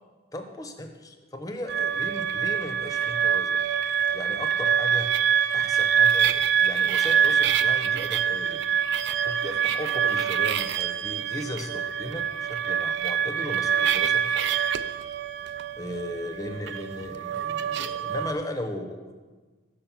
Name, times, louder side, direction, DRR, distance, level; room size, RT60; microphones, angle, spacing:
voice 1, 0.3-3.6 4.1-5.1 5.5-8.6 9.2-15.0 15.8-19.0, left 1 dB, 15° left, 5 dB, 0.7 m, -36 dB
sound 1, 1.7-18.3, right 8 dB, 55° right, 0.3 m, -25 dB
6.3 x 5.9 x 6.9 m, 1.3 s
head